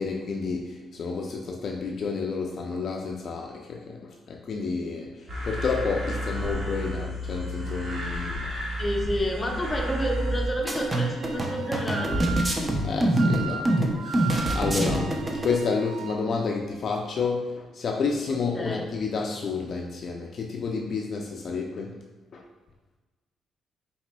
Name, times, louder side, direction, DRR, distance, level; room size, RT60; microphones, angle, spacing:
voice 1, 0.0-8.5 12.8-22.0 22.3-22.4, left 4 dB, 55° left, 1 dB, 0.4 m, -30 dB
sound 1, 5.3-10.5, equal, 55° right, 1.4 m, -31 dB
voice 2, 8.8-12.4 14.0-14.3 18.3-18.8, equal, 15° left, 0 dB, 0.7 m, -30 dB
Wind instrument woodwind instrument, 9.8-16.2, right 6 dB, 70° right, 0.3 m, -38 dB
sound 2, 10.7-15.5, right 1 dB, 25° right, 0.6 m, -25 dB
4.1 x 4.0 x 2.2 m, 1.2 s
cardioid pair, 90°, 0 cm